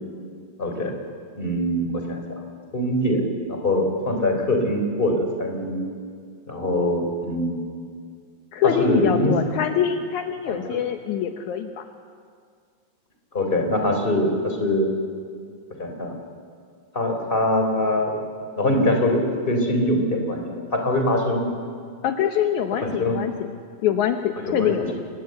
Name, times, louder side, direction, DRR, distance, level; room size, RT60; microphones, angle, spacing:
voice 1, 0.6-0.9 1.4-2.4 2.7-3.2 3.5-5.8 6.5-7.6 8.6-9.3 10.5-10.6 13.3-14.9 15.8-16.1 16.9-18.2 18.6-19.2 19.5-21.5 22.8-23.2 24.4-24.9, left 1 dB, 15° left, 3 dB, 3.7 m, -23 dB
voice 2, 8.5-11.9 22.0-23.3 23.8-24.9, left 9 dB, 80° left, 5 dB, 1.7 m, -24 dB
27.0 x 21.0 x 8.1 m, 2.1 s
omnidirectional pair, 4.7 m